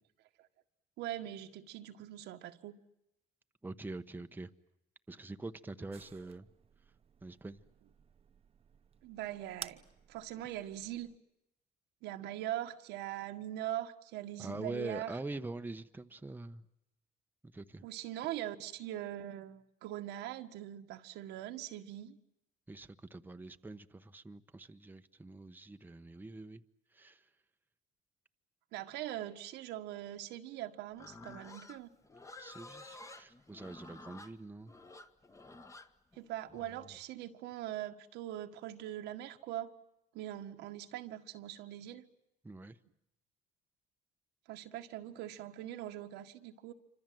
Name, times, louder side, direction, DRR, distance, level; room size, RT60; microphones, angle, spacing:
voice 1, 1.0-2.8 5.8-5.9 9.0-9.8 10.1-11.1 12.0-15.2 17.8-22.2 28.7-31.9 33.1-33.2 36.1-39.7 40.1-42.1 44.4-46.7, right 13 dB, 90° right, 1.7 m, -42 dB
voice 2, 3.6-4.5 5.1-6.5 7.2-7.6 14.4-16.6 17.4-17.8 22.7-26.6 26.9-27.2 32.4-34.7 42.4-42.8, right 2 dB, 10° right, 1.1 m, -44 dB
sound 1, 5.9-11.2, right 7 dB, 35° right, 1.1 m, -54 dB
Livestock farm animals working animals, 31.0-37.0, left 2 dB, 20° left, 1.5 m, -52 dB
27.5 x 25.5 x 7.7 m
cardioid pair, 110°, 17 cm